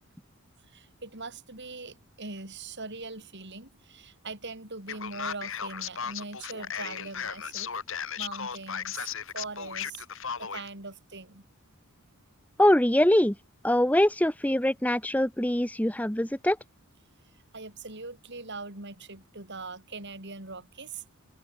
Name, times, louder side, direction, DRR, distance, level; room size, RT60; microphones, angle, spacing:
voice 1, 0.7-7.7 8.2-11.4 17.5-21.0, right 3 dB, 50° right, 5.7 m, -41 dB
Male speech man speaking, 4.9-10.7, left 7 dB, 60° left, 4.1 m, -36 dB
voice 2, 12.6-13.3 13.6-16.6, left 1 dB, 5° left, 1.2 m, -23 dB
head